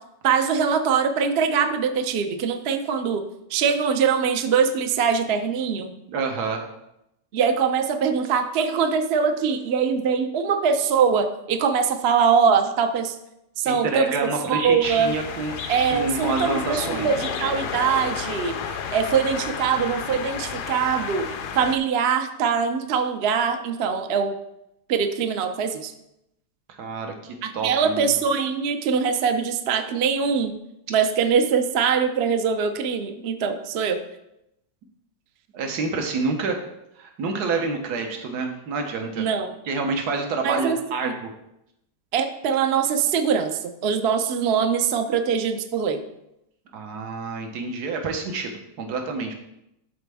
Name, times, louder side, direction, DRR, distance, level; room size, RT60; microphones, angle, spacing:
voice 1, 0.2-3.2 3.5-5.9 7.3-13.2 13.6-15.1 15.7-18.6 18.9-21.3 21.5-24.3 24.9-25.9 27.4-30.6 30.9-34.0 39.2-39.5 40.4-40.8 41.0-41.1 42.1-46.0, right 6 dB, 60° right, 6 dB, 0.6 m, -22 dB
voice 2, 6.1-6.6 13.6-15.6 15.9-17.1 26.8-28.1 35.5-36.6 37.0-39.2 39.6-41.3 46.7-49.3, right 4 dB, 75° right, 4 dB, 1.5 m, -28 dB
sound 1, 14.8-21.8, left 7 dB, 80° left, 1.2 m, -32 dB
12.0 x 4.1 x 3.4 m, 0.83 s
omnidirectional pair, 1.7 m